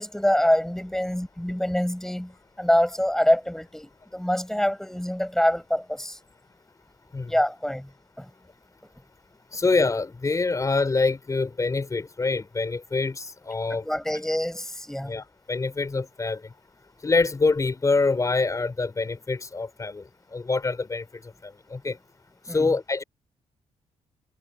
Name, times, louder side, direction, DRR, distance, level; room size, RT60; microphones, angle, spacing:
voice 1, 0.0-6.2 7.3-7.9 8.2-8.3 13.7-15.2 22.5-22.7, equal, 5° left, 6.4 m, -25 dB
voice 2, 9.5-13.9 15.0-16.5 17.0-22.0 22.4-23.0, left 3 dB, 25° left, 4.0 m, -26 dB
cardioid pair, 125°, 13 cm